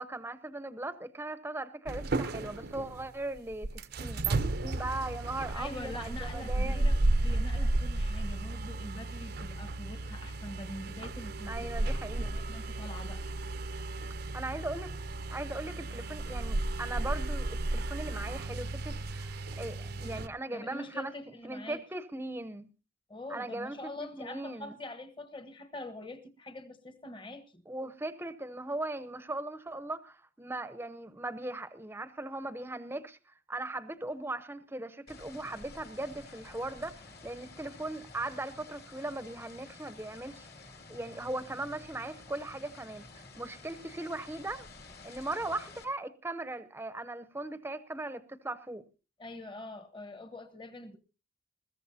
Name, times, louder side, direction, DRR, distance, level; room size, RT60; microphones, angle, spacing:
voice 1, 0.0-6.9 11.5-12.3 14.3-15.0 15.3-21.1 21.4-22.7 23.3-23.8 24.2-24.8 27.7-33.2 33.5-40.5 40.9-44.7 45.0-48.8, right 2 dB, 10° right, 0.8 m, -39 dB
sound 1, 1.9-20.3, right 2 dB, 55° right, 0.7 m, -33 dB
voice 2, 5.5-11.7 11.9-13.3 20.5-21.8 23.1-27.6 49.2-51.0, left 1 dB, 25° left, 1.2 m, -44 dB
sound 2, 35.1-45.8, left 3 dB, 55° left, 2.3 m, -51 dB
21.0 x 15.0 x 2.7 m
head